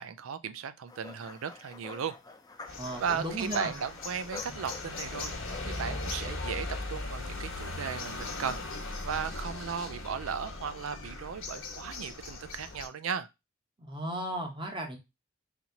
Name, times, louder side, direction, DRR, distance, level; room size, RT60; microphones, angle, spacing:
voice 1, 0.0-2.1 2.7-5.3 5.6-8.6 9.0-13.3, right 7 dB, 85° right, 0.4 m, -36 dB
sound 1, 0.9-6.6, left 3 dB, 20° left, 0.5 m, -49 dB
sound 2, 2.7-12.9, left 2 dB, 70° left, 1.1 m, -38 dB
voice 2, 2.8-3.7 13.8-15.0, right 1 dB, 25° right, 0.9 m, -35 dB
4.0 x 2.9 x 2.7 m
head